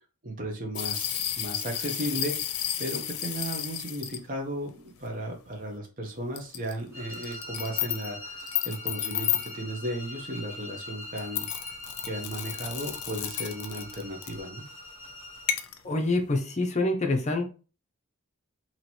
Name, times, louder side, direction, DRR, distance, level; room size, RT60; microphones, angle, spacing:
voice 1, 0.2-11.5 12.0-14.6, right 1 dB, 40° right, 1 dB, 0.8 m, -35 dB
sound 1, 0.7-4.2 5.0-5.1 6.4-6.7 7.1-8.1 8.4-9.5 11.2-14.4 15.5-15.8, left 10 dB, 75° left, 0.6 m, -32 dB
sound 2, 6.9-15.6, left 1 dB, 10° right, 1.0 m, -43 dB
voice 2, 15.8-17.5, left 2 dB, 30° left, 3 dB, 0.5 m, -26 dB
2.9 x 2.9 x 4.3 m, 0.34 s
head